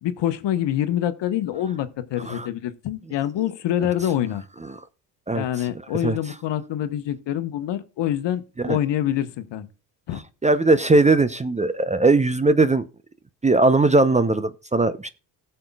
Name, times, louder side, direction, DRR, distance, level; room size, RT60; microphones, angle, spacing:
voice 1, 0.0-4.4 5.3-9.7 10.1-10.2, left 11 dB, 60° left, 1.2 m, -26 dB
voice 2, 10.4-12.8 13.4-15.1, right 3 dB, 15° right, 0.7 m, -19 dB
17.5 x 6.8 x 2.3 m
supercardioid pair, 65°, 47 cm